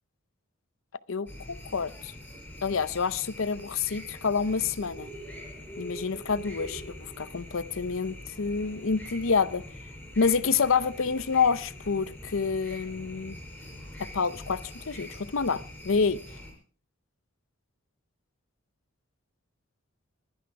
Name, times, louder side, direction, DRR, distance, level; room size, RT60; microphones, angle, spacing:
voice 1, 1.1-2.1 2.6-5.1 5.8-9.6 10.2-13.4 14.0-16.2, left 5 dB, 70° left, 0.7 m, -28 dB
sound 1, 1.3-16.5, equal, 5° left, 4.9 m, -44 dB
22.0 x 10.5 x 4.7 m
head